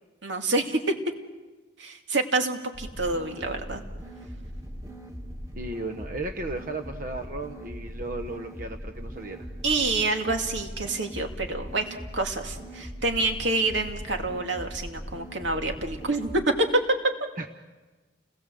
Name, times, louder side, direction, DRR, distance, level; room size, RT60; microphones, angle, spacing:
voice 1, 0.2-0.8 1.8-3.8 9.6-11.9 12.1-16.7, right 2 dB, 75° right, 4 dB, 2.5 m, -27 dB
sound 1, 2.7-16.4, equal, 15° right, 2.2 m, -40 dB
voice 2, 5.6-9.5 17.4-17.5, right 2 dB, 45° right, 6 dB, 1.0 m, -35 dB
29.5 x 20.5 x 7.7 m, 1.2 s
head